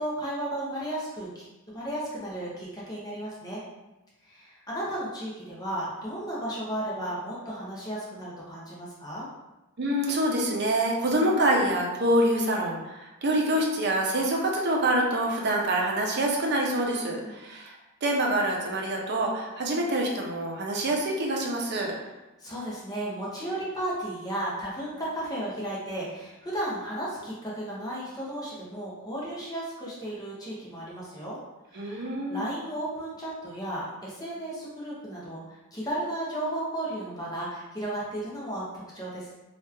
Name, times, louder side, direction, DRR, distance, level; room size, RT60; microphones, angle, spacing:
voice 1, 0.0-1.5 1.7-3.6 4.2-9.3 17.0-17.4 22.4-31.4 31.7-35.4 35.7-39.3, right 1 dB, 20° left, -7 dB, 0.8 m, -34 dB
voice 2, 9.8-17.8 18.0-21.9 31.7-32.4, right 1 dB, 50° right, -1 dB, 0.6 m, -26 dB
3.0 x 2.4 x 3.3 m, 1.0 s
head